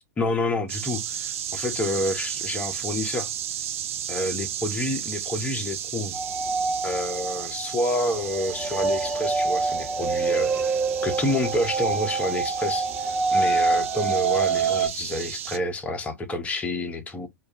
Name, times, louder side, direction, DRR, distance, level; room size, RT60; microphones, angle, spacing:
voice 1, 0.2-3.3 4.1-6.2 6.8-10.8 11.0-12.9 13.3-17.3, left 1 dB, 15° left, 0.7 m, -28 dB
sound 1, 0.7-15.6, right 10 dB, 60° right, 0.4 m, -34 dB
sound 2, 6.1-14.9, right 4 dB, 20° right, 1.2 m, -26 dB
2.3 x 2.2 x 3.2 m
figure-of-eight pair, 95°, 8 cm